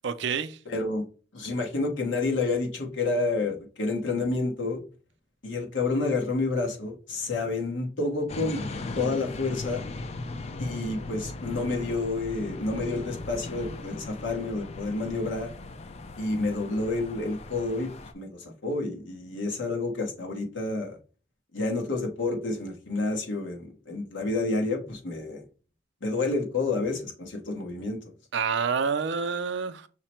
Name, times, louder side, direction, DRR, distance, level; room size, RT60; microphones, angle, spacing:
voice 1, 0.0-0.6 28.3-29.9, right 6 dB, 65° right, 0.4 m, -28 dB
voice 2, 0.7-1.0 1.3-4.8 5.4-8.6 8.9-9.9 10.6-15.5 16.2-17.9 18.1-21.0 21.5-25.4 26.0-28.0, left 3 dB, 70° left, 1.1 m, -29 dB
sound 1, 8.3-18.1, left 2 dB, 35° left, 0.3 m, -38 dB
5.8 x 2.1 x 4.3 m
head